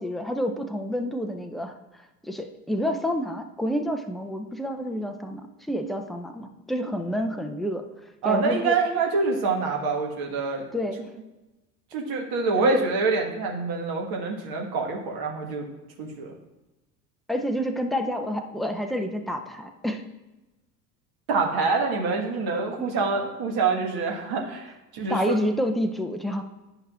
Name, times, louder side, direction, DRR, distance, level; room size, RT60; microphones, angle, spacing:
voice 1, 0.0-1.7 2.2-7.9 8.2-8.8 10.7-11.0 12.6-12.8 17.3-20.0 22.8-22.9 25.1-26.4, equal, ahead, 5 dB, 0.5 m, -28 dB
voice 2, 8.2-10.6 11.9-15.7 16.0-16.3 21.3-25.4, right 4 dB, 50° right, 1 dB, 1.5 m, -26 dB
10.0 x 5.4 x 2.4 m, 1.1 s
hypercardioid pair, 75°, 47 cm